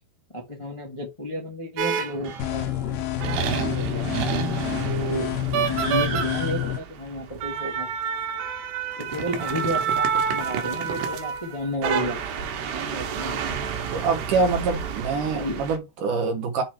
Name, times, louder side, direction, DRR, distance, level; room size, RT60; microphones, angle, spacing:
voice 1, 0.3-2.7 3.6-4.2 4.8-5.3 5.7-7.9 9.0-13.6 15.3-15.6, equal, 45° left, 0.4 m, -32 dB
sound 1, 1.8-2.6 3.2-15.8, right 7 dB, 85° right, 3.3 m, -29 dB
sound 2, 2.4-6.8, left 12 dB, 70° left, 2.4 m, -28 dB
voice 2, 13.9-16.6, right 4 dB, 65° right, 2.3 m, -25 dB
7.5 x 3.2 x 4.7 m
omnidirectional pair, 4.7 m